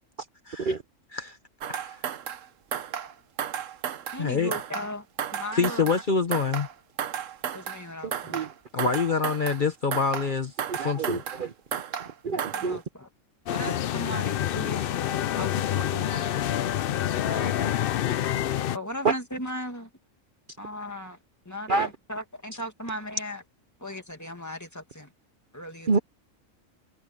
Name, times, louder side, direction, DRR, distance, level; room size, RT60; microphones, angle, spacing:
sound 1, 1.6-2.5 2.7-3.1 3.4-4.3 4.5-4.9 5.2-6.1 6.3-6.7 7.0-7.8 8.1-8.5 8.8-9.6 9.9-10.3 10.6-11.5 11.7-12.1 12.4-12.8, right 9 dB, 75° right, 1.2 m, -33 dB
voice 1, 1.7-2.0 4.2-4.6 5.5-6.7 8.7-11.2 17.2-17.8, left 5 dB, 40° left, 1.1 m, -27 dB
voice 2, 4.1-5.1 5.3-5.9 7.5-8.4 12.3-13.1 13.5-16.4 18.7-19.9 20.6-21.2 21.5-23.4 23.8-25.1 25.5-26.0, left 1 dB, 15° left, 2.3 m, -37 dB
voice 3, 8.0-8.5 10.7-11.8 12.2-12.8 19.0-19.1 21.7-21.9 25.9-26.0, right 4 dB, 45° right, 0.8 m, -27 dB
sound 2, 13.5-18.8, left 11 dB, 60° left, 0.6 m, -27 dB
omnidirectional pair, 1.4 m